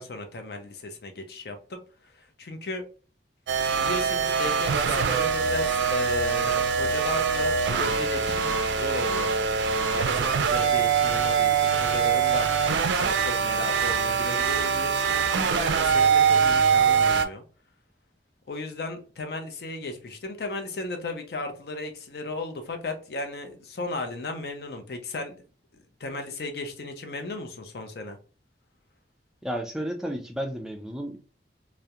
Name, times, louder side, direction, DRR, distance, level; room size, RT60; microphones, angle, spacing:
voice 1, 0.0-2.8 3.7-9.3 9.9-12.5 13.0-17.4 18.5-25.4 26.0-28.2, left 2 dB, 60° left, 0.5 m, -35 dB
sound 1, 3.5-17.2, right 6 dB, 85° right, 0.3 m, -23 dB
voice 2, 29.4-31.2, equal, 5° right, 0.3 m, -32 dB
2.3 x 2.0 x 2.8 m
head